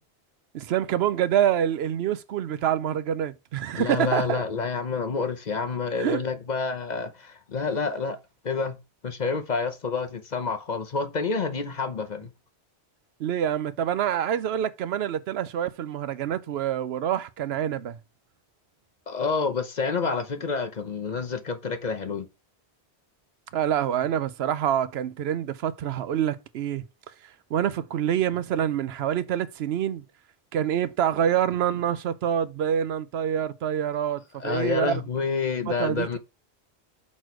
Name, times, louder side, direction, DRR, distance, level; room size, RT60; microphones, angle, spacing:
voice 1, 0.5-4.4 6.0-6.2 13.2-18.0 23.5-26.8 27.5-30.0 30.5-35.0 35.7-36.2, right 9 dB, 75° right, 0.8 m, -26 dB
voice 2, 3.7-8.2 8.4-8.8 9.0-12.3 19.1-22.3 34.4-36.2, left 4 dB, 45° left, 0.8 m, -28 dB
6.1 x 4.3 x 4.6 m
omnidirectional pair, 1.1 m